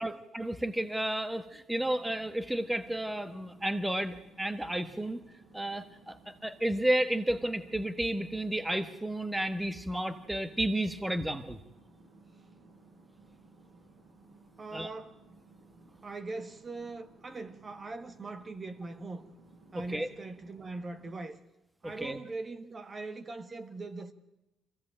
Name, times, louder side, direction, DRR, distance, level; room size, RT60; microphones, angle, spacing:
voice 1, 0.0-5.2 5.5-11.6 14.7-14.9 19.9-20.1 22.0-22.2, right 1 dB, 10° right, 1.4 m, -32 dB
sound 1, 1.7-21.2, right 3 dB, 60° right, 7.8 m, -58 dB
voice 2, 14.6-15.2 16.0-19.3 19.7-21.4 21.8-24.1, right 3 dB, 35° right, 1.5 m, -41 dB
23.0 x 16.5 x 8.9 m
cardioid pair, 90°, 0 cm